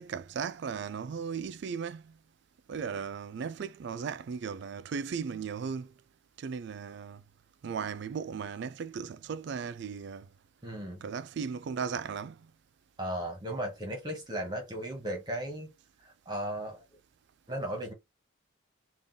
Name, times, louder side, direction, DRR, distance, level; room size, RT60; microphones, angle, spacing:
voice 1, 0.0-2.2 2.7-5.9 6.4-7.2 7.6-10.3 11.0-12.5, right 6 dB, 55° right, 0.3 m, -36 dB
voice 2, 10.6-11.0 13.0-15.7 16.0-16.8 17.5-17.9, right 1 dB, 20° right, 1.3 m, -36 dB
3.5 x 2.5 x 3.8 m
head